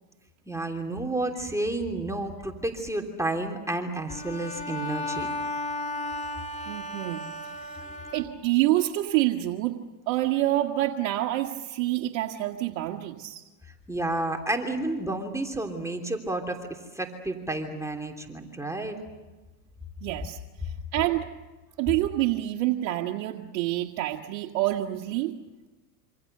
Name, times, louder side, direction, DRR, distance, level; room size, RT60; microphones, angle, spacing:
voice 1, 0.5-5.3 13.9-16.6 16.9-19.0, right 2 dB, 5° right, 3 dB, 3.2 m, -30 dB
Bowed string instrument, 4.1-8.7, left 1 dB, 15° left, 2.9 m, -34 dB
voice 2, 6.7-9.8 10.1-13.4 20.0-20.4 20.6-21.3 21.8-25.3, right 15 dB, 60° right, 1 dB, 1.9 m, -27 dB
27.0 x 26.0 x 6.8 m, 1.2 s
hypercardioid pair, 95°, 49 cm